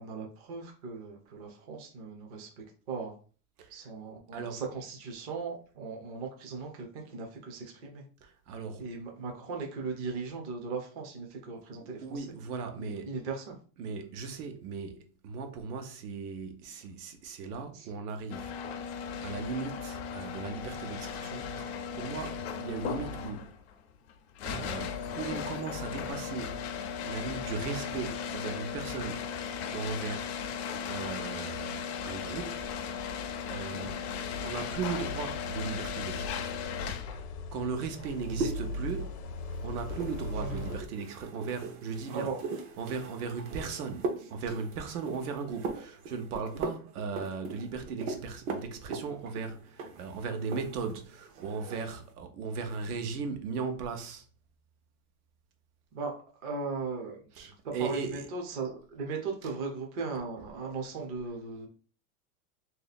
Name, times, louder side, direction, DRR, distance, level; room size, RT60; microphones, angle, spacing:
voice 1, 0.0-3.1 3.7-8.0 8.8-12.3 12.8-13.6 16.7-16.9 17.7-17.9 33.7-34.0 38.4-38.5 40.4-40.8 42.1-42.4 55.9-56.1 56.4-61.7, right 4 dB, 25° right, 0.4 m, -38 dB
voice 2, 3.6-3.9 4.3-4.6 8.2-8.9 11.7-13.1 13.8-18.5 19.2-23.5 24.5-26.7 27.0-30.3 30.9-32.7 33.5-34.1 34.4-36.6 37.5-39.2 39.6-42.3 42.8-54.2 57.3-58.3 59.4-59.5, right 5 dB, 90° right, 1.0 m, -37 dB
sound 1, 18.3-37.3, left 7 dB, 50° left, 0.4 m, -37 dB
sound 2, 32.8-40.8, left 2 dB, 80° left, 0.7 m, -40 dB
sound 3, 37.9-51.0 51.3-52.0, right 4 dB, 60° right, 0.9 m, -40 dB
3.0 x 2.7 x 4.0 m
supercardioid pair, 180°, 44 cm